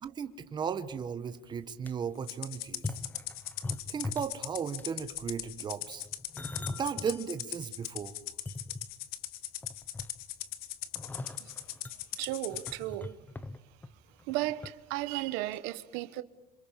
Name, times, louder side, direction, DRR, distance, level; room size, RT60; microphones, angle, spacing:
voice 1, 0.0-2.9 3.9-6.0 6.7-8.1, right 7 dB, 25° right, 1.2 m, -36 dB
sound 1, 1.0-1.1 1.5-1.9 2.7-4.4 4.7-5.1 5.9-7.2 7.7-7.8 8.3-9.3 9.6-10.4 10.9-14.7 15.0-15.2 15.5-15.6, left 2 dB, 10° left, 0.9 m, -41 dB
Rattle (instrument), 2.3-12.7, left 14 dB, 65° left, 1.5 m, -40 dB
voice 2, 12.2-13.2 14.3-16.2, right 16 dB, 85° right, 1.2 m, -34 dB
28.0 x 27.0 x 7.4 m
cardioid pair, 150°, 17 cm